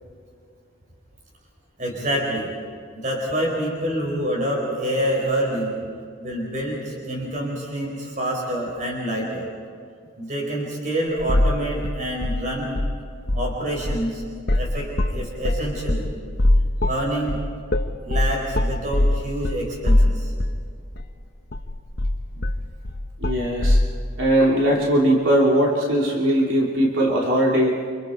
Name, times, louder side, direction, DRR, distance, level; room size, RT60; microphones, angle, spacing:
voice 1, 1.8-2.5 3.0-5.7 6.2-9.5 10.2-12.8 13.3-14.2 14.6-16.2 16.8-17.4 18.0-20.3, right 1 dB, 40° right, -1 dB, 4.8 m, -27 dB
sound 1, 11.2-11.6 11.8-13.0 13.2-13.5 13.9-20.6 21.0-21.1 21.5-23.9, left 1 dB, 50° left, 1.1 m, -21 dB
voice 2, 23.2-23.8 24.2-27.7, right 1 dB, 70° right, -2 dB, 3.0 m, -19 dB
30.0 x 26.5 x 4.5 m, 2.2 s
head